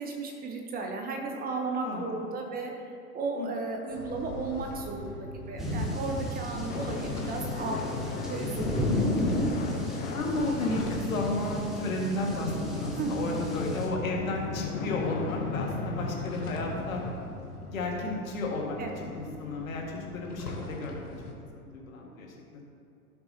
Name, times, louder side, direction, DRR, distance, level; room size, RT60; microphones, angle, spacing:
voice 1, 0.0-5.2 5.5-7.9 8.3-8.7 13.0-13.4 18.8-19.0, right 3 dB, 20° right, 2 dB, 0.9 m, -34 dB
voice 2, 1.7-2.1 3.4-3.5 8.8-9.2 10.1-17.0 17.7-18.8 19.2-21.0 21.5-22.6, left 2 dB, 65° left, -1 dB, 2.0 m, -33 dB
sound 1, 3.9-21.3, left 1 dB, 85° left, 1.5 m, -43 dB
sound 2, 5.6-13.9, left 1 dB, ahead, 1.3 m, -33 dB
sound 3, 6.7-17.1, left 4 dB, 20° left, 0.7 m, -36 dB
16.0 x 6.7 x 2.9 m, 2.7 s
figure-of-eight pair, 95°, 45 cm